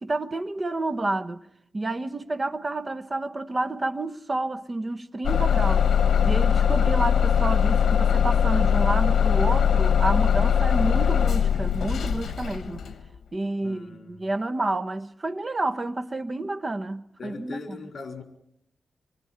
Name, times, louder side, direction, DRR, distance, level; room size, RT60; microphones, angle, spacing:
voice 1, 0.0-1.4 1.7-5.9 6.2-12.8 13.3-17.8, right 2 dB, 30° right, 1.1 m, -29 dB
Bus / Engine starting, 5.2-13.0, left 8 dB, 80° left, 1.2 m, -21 dB
voice 2, 13.6-14.3 17.2-18.2, left 4 dB, 60° left, 4.4 m, -39 dB
26.0 x 24.0 x 4.5 m
wide cardioid pair, 95°, 0 cm